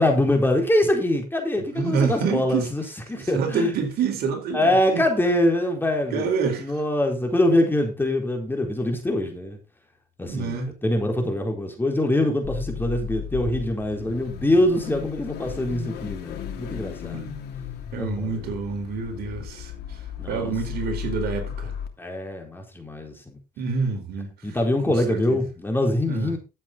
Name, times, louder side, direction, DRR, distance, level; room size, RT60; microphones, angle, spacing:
voice 1, 0.0-2.8 3.1-3.7 4.5-6.3 6.6-9.6 10.2-17.3 18.0-18.5 20.2-20.5 22.0-23.4 24.4-26.4, left 1 dB, 10° left, 4.1 m, -24 dB
voice 2, 1.7-2.7 3.1-5.1 6.1-6.7 10.3-10.7 17.1-17.4 17.9-20.0 20.3-21.7 23.6-24.3 24.8-25.4 26.1-26.3, right 5 dB, 70° right, 4.5 m, -27 dB
Car / Idling / Accelerating revving vroom, 12.4-21.9, left 8 dB, 75° left, 3.0 m, -35 dB
12.5 x 8.6 x 4.0 m
cardioid pair, 110°, 17 cm